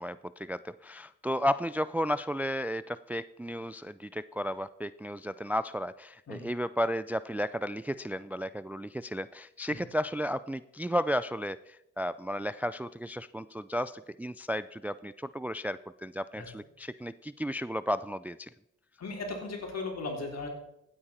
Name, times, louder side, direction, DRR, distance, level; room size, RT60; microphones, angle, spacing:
voice 1, 0.0-18.5, equal, 5° right, 16 dB, 0.3 m, -33 dB
voice 2, 19.0-20.5, left 3 dB, 60° left, 2 dB, 3.7 m, -37 dB
16.0 x 8.8 x 4.3 m, 0.83 s
supercardioid pair, 55°, 30 cm